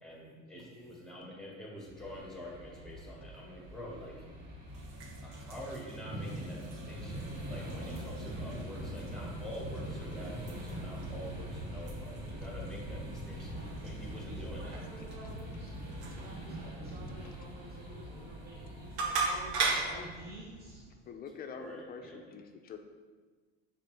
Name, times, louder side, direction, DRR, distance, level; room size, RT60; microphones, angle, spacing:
voice 1, 0.0-4.1 5.2-14.8 21.5-22.2, equal, ahead, -3 dB, 0.9 m, -46 dB
voice 2, 0.5-1.0 11.7-12.0 14.2-20.8, right 1 dB, 40° right, -6 dB, 1.4 m, -51 dB
sound 1, 1.9-20.9, right 1 dB, 65° right, 1.5 m, -43 dB
sound 2, 4.7-20.0, right 4 dB, 85° right, 0.6 m, -41 dB
voice 3, 21.0-22.8, left 6 dB, 30° left, 5 dB, 0.3 m, -46 dB
3.2 x 2.6 x 4.4 m, 1.4 s
hypercardioid pair, 85°, 34 cm